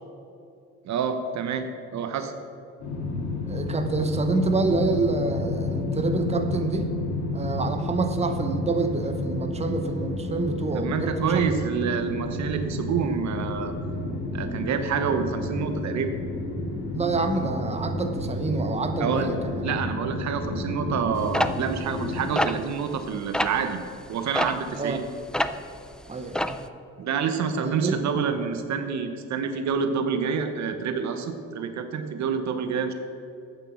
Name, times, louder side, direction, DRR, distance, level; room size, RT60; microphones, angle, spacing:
voice 1, 0.8-2.3 10.7-13.7 14.3-16.1 19.0-19.3 19.6-23.8 24.1-25.0 27.0-32.9, right 6 dB, 65° right, 8 dB, 0.9 m, -27 dB
sound 1, 2.8-22.3, left 2 dB, 65° left, 2.8 m, -31 dB
voice 2, 3.5-6.9 7.3-11.3 16.9-19.6 24.8-25.0 26.1-26.6 27.6-28.0, right 3 dB, 20° right, 6 dB, 0.9 m, -27 dB
sound 2, 21.3-23.1 23.3-23.6 24.4-25.8 26.0-26.7, left 1 dB, 5° left, 0.3 m, -26 dB
8.4 x 6.6 x 7.3 m, 2.5 s
cardioid pair, 90°, 30 cm